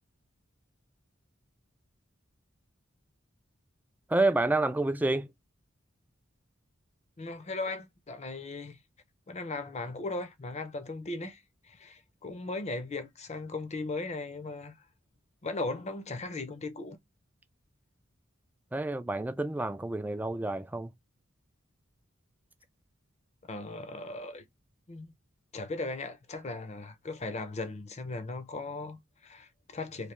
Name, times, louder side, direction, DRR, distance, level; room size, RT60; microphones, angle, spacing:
voice 1, 4.1-5.3 18.7-20.9, right 2 dB, 10° right, 0.3 m, -28 dB
voice 2, 7.2-8.8 9.3-14.7 15.4-17.0 23.5-24.4 24.9-25.1 25.5-30.1, left 3 dB, 35° left, 0.6 m, -37 dB
3.2 x 2.7 x 3.0 m
head